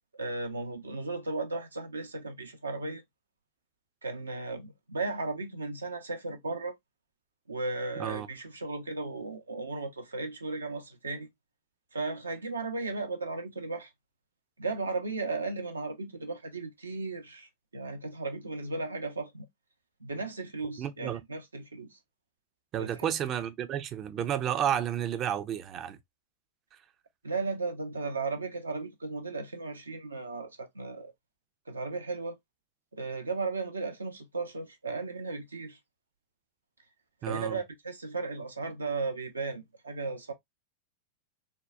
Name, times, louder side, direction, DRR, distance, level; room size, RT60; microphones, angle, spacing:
voice 1, 0.2-3.0 4.0-6.7 7.5-11.3 11.9-13.9 14.6-19.4 20.0-22.0 22.8-23.1 27.2-31.1 31.7-32.4 32.9-35.8 37.2-40.3, right 3 dB, 75° right, 0.6 m, -35 dB
voice 2, 20.8-21.2 22.7-26.0 37.2-37.6, right 10 dB, 30° right, 0.4 m, -31 dB
3.7 x 2.2 x 2.3 m
figure-of-eight pair, 90°, 0 cm